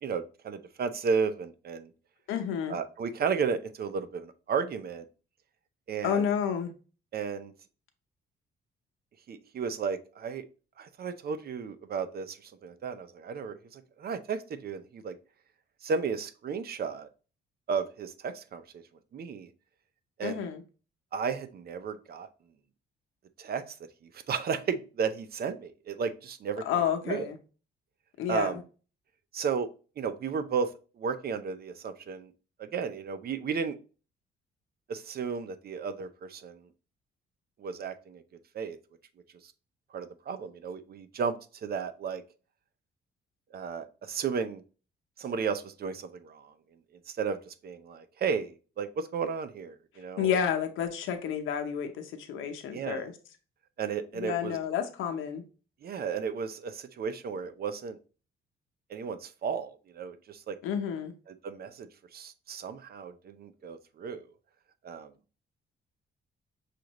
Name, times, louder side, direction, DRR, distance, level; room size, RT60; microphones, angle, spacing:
voice 1, 0.0-1.9 2.7-5.1 5.9-6.2 7.1-7.5 9.3-10.5 10.8-15.1 15.8-17.1 17.7-18.6 19.1-19.5 20.2-20.4 21.1-22.3 23.4-23.8 24.3-26.6 27.1-27.3 28.3-28.6 29.3-29.7 30.0-30.7 31.0-32.3 32.6-33.8 34.9-36.6 37.6-38.2 38.5-38.8 39.9-41.3 41.6-42.2 43.5-44.6 45.2-46.5 47.2-50.3 52.7-53.0 53.8-54.6 55.8-58.0 58.9-60.6 61.4-64.2 64.8-65.1, right 6 dB, 50° right, 10 dB, 0.6 m, -33 dB
voice 2, 2.3-2.8 6.0-6.7 20.2-20.6 26.6-27.4 28.2-28.6 50.2-53.1 54.1-55.4 60.6-61.1, left 8 dB, 85° left, 6 dB, 0.8 m, -30 dB
6.2 x 2.5 x 2.9 m, 0.35 s
cardioid pair, 90°, 20 cm